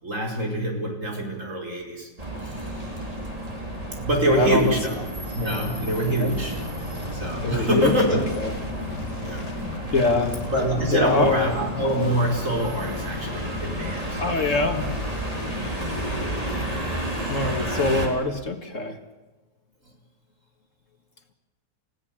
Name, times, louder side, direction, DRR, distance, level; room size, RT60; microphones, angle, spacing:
voice 1, 0.0-2.1 2.4-3.0 4.0-5.1 5.3-6.6 7.0-8.3 9.2-9.9 10.5-14.6, right 1 dB, 50° right, 0 dB, 5.3 m, -25 dB
sound 1, 2.2-18.1, right 1 dB, 20° right, 4.0 m, -32 dB
voice 2, 4.3-4.8 6.2-6.3 7.4-8.5 9.9-10.4 10.9-11.3 14.2-14.9 17.3-19.0, left 2 dB, 50° left, 5 dB, 2.1 m, -24 dB
sound 2, 6.4-17.6, left 7 dB, 85° left, 2.2 m, -37 dB
29.5 x 17.0 x 7.5 m, 1.2 s
omnidirectional pair, 1.7 m